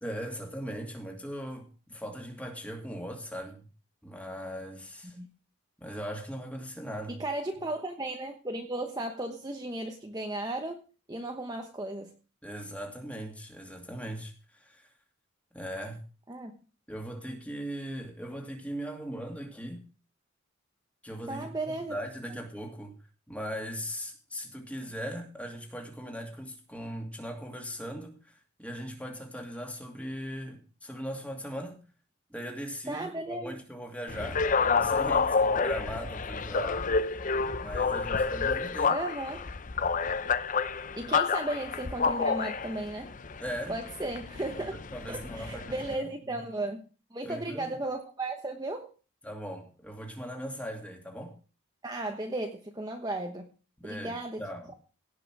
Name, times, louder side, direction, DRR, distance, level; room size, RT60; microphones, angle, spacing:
voice 1, 0.0-3.7 4.0-5.2 5.8-7.2 12.4-14.9 15.5-16.0 16.9-19.9 21.0-22.9 23.3-28.3 28.6-31.8 32.3-37.2 37.6-39.0 43.4-43.8 44.5-46.4 47.2-47.7 49.2-51.4 53.8-54.7, equal, 5° left, 2 dB, 2.5 m, -39 dB
voice 2, 7.1-10.8 11.1-12.1 16.3-16.5 21.3-22.0 22.3-22.4 32.9-33.6 38.9-39.5 40.9-43.1 43.7-44.7 45.1-46.8 47.1-48.9 51.8-53.5 53.8-54.4, right 2 dB, 20° right, 3 dB, 1.1 m, -35 dB
sound 1, 34.1-45.9, left 5 dB, 40° left, 0.6 m, -29 dB
17.0 x 5.8 x 6.2 m, 0.35 s
head